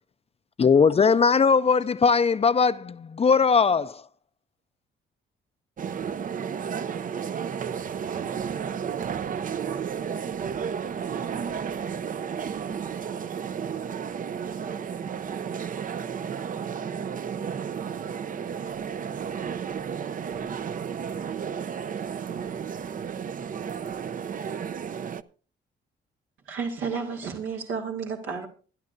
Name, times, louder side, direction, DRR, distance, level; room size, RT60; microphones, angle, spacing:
voice 1, 0.6-4.0, left 5 dB, 30° left, 0.5 m, -20 dB
voice 2, 1.1-2.0 6.8-7.6 12.9-15.4, right 4 dB, 70° right, 6.0 m, -53 dB
sound 1, 5.8-25.2, right 7 dB, 45° right, 0.6 m, -32 dB
voice 3, 26.5-28.5, right 5 dB, 85° right, 2.4 m, -31 dB
23.5 x 11.0 x 2.6 m
cardioid pair, 90°, 20 cm